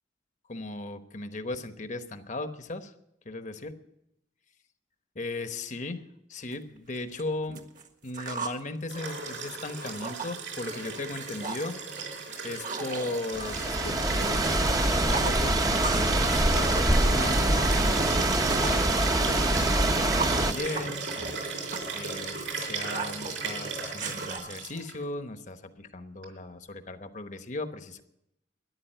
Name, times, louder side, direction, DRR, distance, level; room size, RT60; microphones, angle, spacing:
voice 1, 0.5-2.9 3.2-3.7 5.1-6.0 6.3-7.6 8.0-11.7 12.4-15.5 15.8-21.0 21.9-28.0, left 2 dB, 40° left, 9 dB, 1.1 m, -37 dB
sound 1, 6.5-6.6 7.0-8.6 9.0-10.3 10.6-10.9 11.1-11.7 12.0-14.6 14.8-16.2 16.5-18.9 19.4-24.4, right 4 dB, 45° right, 1.6 m, -37 dB
Liquid, 8.9-24.9 26.2-26.3, right 4 dB, 80° right, 5.2 m, -35 dB
sound 2, 13.3-20.5, right 1 dB, 20° right, 0.9 m, -24 dB
13.5 x 11.0 x 9.2 m, 0.82 s
head